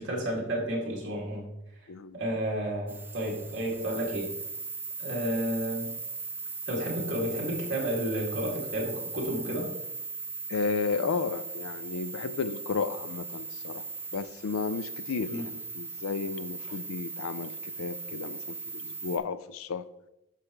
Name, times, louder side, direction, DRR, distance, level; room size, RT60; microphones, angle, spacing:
voice 1, 0.0-1.5 2.1-4.3 5.0-5.9 6.7-9.7 15.2-15.5, right 1 dB, 55° right, -3 dB, 2.2 m, -31 dB
sound 1, 2.9-19.2, right 4 dB, 10° right, 0.3 m, -39 dB
voice 2, 10.5-13.8 14.1-19.8, left 4 dB, 85° left, 13 dB, 0.4 m, -33 dB
11.5 x 4.8 x 3.0 m, 0.87 s
head